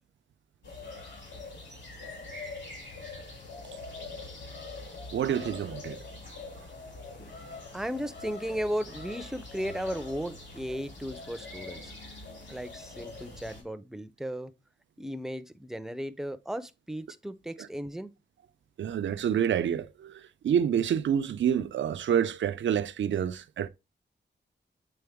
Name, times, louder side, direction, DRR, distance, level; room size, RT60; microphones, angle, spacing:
sound 1, 0.6-13.6, left 3 dB, 70° left, 2.7 m, -43 dB
voice 1, 5.1-6.0 17.6-17.7 18.8-23.7, right 9 dB, 85° right, 0.4 m, -28 dB
voice 2, 7.7-11.9 12.5-14.5 15.0-18.1, equal, ahead, 0.4 m, -35 dB
7.7 x 3.8 x 3.5 m
wide cardioid pair, 165°, 19 cm